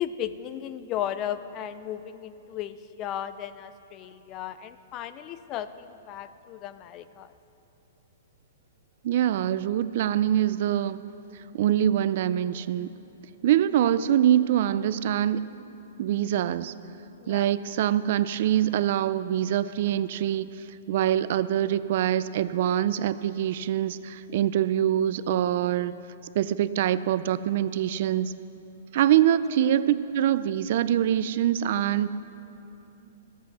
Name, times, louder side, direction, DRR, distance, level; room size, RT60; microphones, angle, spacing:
voice 1, 0.0-7.3 17.2-17.5 24.3-24.4, left 10 dB, 30° left, 13 dB, 0.4 m, -35 dB
voice 2, 9.0-11.0 11.3-12.9 13.4-15.5 16.0-16.7 17.3-25.9 26.3-28.3 28.9-32.1, right 11 dB, 55° right, 15 dB, 0.3 m, -24 dB
13.5 x 8.2 x 6.1 m, 2.9 s
hypercardioid pair, 150°, 0 cm